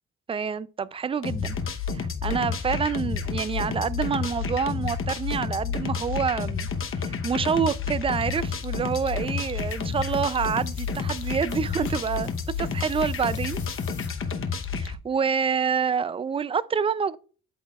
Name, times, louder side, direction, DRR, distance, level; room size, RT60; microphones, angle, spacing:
voice 1, 0.3-1.6 1.9-6.7 7.0-12.3 12.6-13.6 14.7-17.2, right 6 dB, 20° right, 0.4 m, -27 dB
sound 1, 1.2-14.9, left 5 dB, 45° left, 0.9 m, -30 dB
sound 2, 8.2-14.1, left 8 dB, 75° left, 2.4 m, -50 dB
12.0 x 4.0 x 2.3 m
cardioid pair, 90°, 30 cm